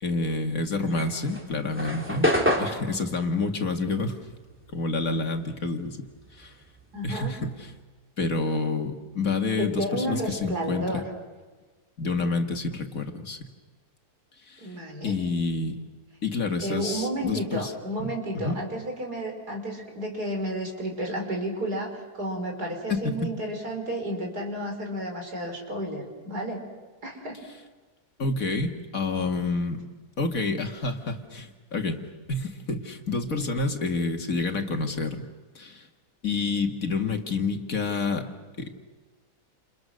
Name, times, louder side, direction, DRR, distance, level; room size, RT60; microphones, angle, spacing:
voice 1, 0.0-2.3 2.6-4.3 4.7-6.1 6.3-6.6 7.0-7.7 8.2-11.0 12.0-13.4 14.5-14.7 15.0-15.8 16.2-17.7 18.0-18.6 22.9-23.0 28.2-29.8 30.2-32.0 32.3-35.2 35.6-35.9 36.2-38.3 38.6-38.8, left 3 dB, 55° left, 4 dB, 2.4 m, -28 dB
sound 1, 0.8-5.5 5.8-7.8, equal, 5° right, 3.3 m, -29 dB
voice 2, 6.9-7.3 9.6-11.0 14.6-15.2 16.6-26.6 27.0-27.4, right 1 dB, 75° right, 2 dB, 5.9 m, -32 dB
29.5 x 29.0 x 6.5 m, 1.3 s
omnidirectional pair, 1.7 m